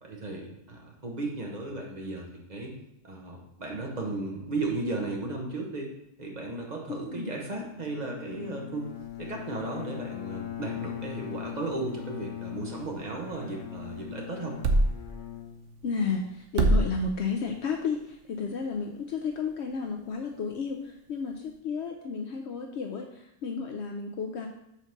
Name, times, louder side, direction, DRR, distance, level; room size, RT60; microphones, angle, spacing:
voice 1, 0.0-2.7 3.0-5.9 6.2-8.9 9.2-14.6, right 2 dB, 35° right, -1 dB, 1.3 m, -35 dB
voice 2, 6.9-7.3 15.8-24.5, left 5 dB, 65° left, 3 dB, 0.8 m, -32 dB
Bowed string instrument, 7.8-16.2, left 11 dB, 85° left, 1.2 m, -40 dB
sound 1, 8.8-21.6, right 2 dB, 75° right, 1.1 m, -34 dB
5.8 x 4.0 x 5.9 m, 0.84 s
omnidirectional pair, 1.3 m